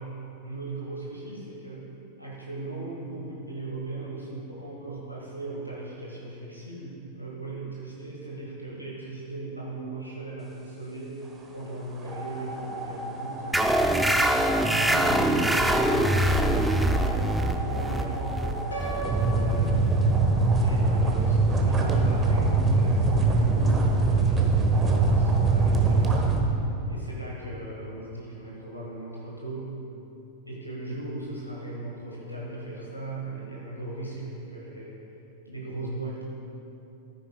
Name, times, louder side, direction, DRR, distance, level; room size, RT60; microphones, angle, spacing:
voice 1, 0.0-1.9 2.2-11.2 11.5-14.0 14.6-19.9 20.5-26.4 26.9-29.7 30.5-35.0 35.4-36.2, right 2 dB, 90° right, -5 dB, 1.4 m, -37 dB
sound 1, 12.0-26.4, right 3 dB, 20° right, 1.1 m, -25 dB
sound 2, 13.5-20.7, right 1 dB, 5° right, 0.5 m, -24 dB
Piano, 18.7-20.7, right 2 dB, 75° left, 1.4 m, -38 dB
13.0 x 9.8 x 2.2 m, 2.8 s
figure-of-eight pair, 90°, 0 cm